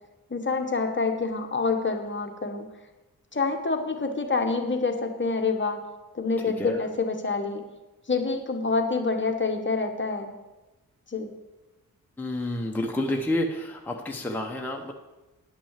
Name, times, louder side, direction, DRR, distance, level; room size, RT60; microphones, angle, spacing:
voice 1, 0.3-2.6 3.3-5.8 6.1-7.7 8.1-10.3 11.1-11.3, left 4 dB, 30° left, 4 dB, 1.1 m, -27 dB
voice 2, 6.4-6.8 12.2-14.9, left 1 dB, 5° left, 1 dB, 0.8 m, -29 dB
10.0 x 6.0 x 7.4 m, 1.1 s
wide cardioid pair, 125°, 36 cm